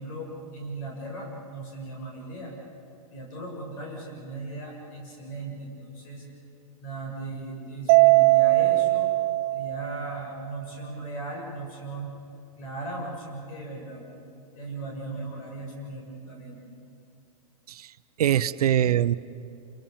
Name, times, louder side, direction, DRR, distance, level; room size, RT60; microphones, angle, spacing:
voice 1, 0.0-2.5 3.1-6.2 6.8-9.1 9.5-12.1 12.5-14.0 14.5-16.6, right 2 dB, 65° left, -2 dB, 7.2 m, -37 dB
Mallet percussion, 7.9-10.3, right 22 dB, 40° right, 0.5 m, -20 dB
voice 2, 17.7-19.1, right 11 dB, 90° right, 13 dB, 0.6 m, -23 dB
29.0 x 22.5 x 7.3 m, 2.7 s
hypercardioid pair, 135°, 19 cm